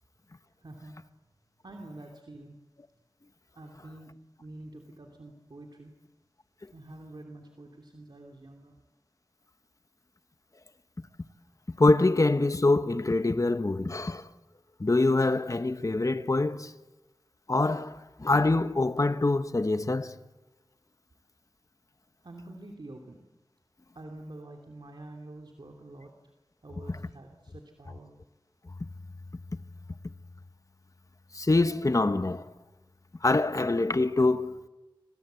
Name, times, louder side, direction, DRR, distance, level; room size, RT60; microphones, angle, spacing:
voice 1, 0.6-1.1 1.6-2.6 3.5-4.1 4.4-5.9 6.7-8.7 22.2-23.2 23.9-26.1 26.6-28.1, right 2 dB, 60° right, 2.8 m, -47 dB
voice 2, 11.8-14.2 14.8-16.7 17.5-20.1 31.3-32.5 33.2-34.6, left 2 dB, 40° left, 1.1 m, -25 dB
28.0 x 25.5 x 8.1 m
wide cardioid pair, 70°, 9 cm